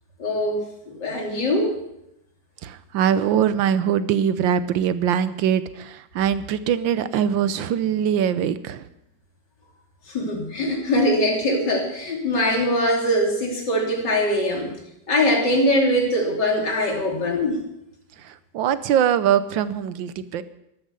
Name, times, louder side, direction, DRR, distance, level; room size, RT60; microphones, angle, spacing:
voice 1, 0.2-1.8 10.1-14.7 15.1-17.6, left 1 dB, 65° left, 0 dB, 3.6 m, -22 dB
voice 2, 2.6-8.9 18.2-20.4, right 9 dB, 90° right, 14 dB, 1.5 m, -22 dB
13.0 x 12.0 x 6.8 m, 0.83 s
omnidirectional pair, 2.0 m